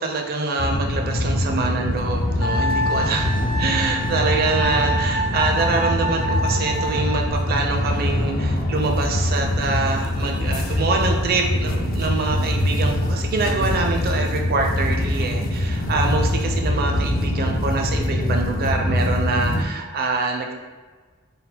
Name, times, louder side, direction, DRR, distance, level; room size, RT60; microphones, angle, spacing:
voice 1, 0.0-3.3 3.6-20.5, right 3 dB, 45° right, 2 dB, 0.5 m, -25 dB
sound 1, 0.6-19.6, left 1 dB, 45° left, 0.4 m, -23 dB
Wind instrument woodwind instrument, 2.4-7.3, equal, 85° left, 0.6 m, -27 dB
3.9 x 2.1 x 4.3 m, 1.4 s
head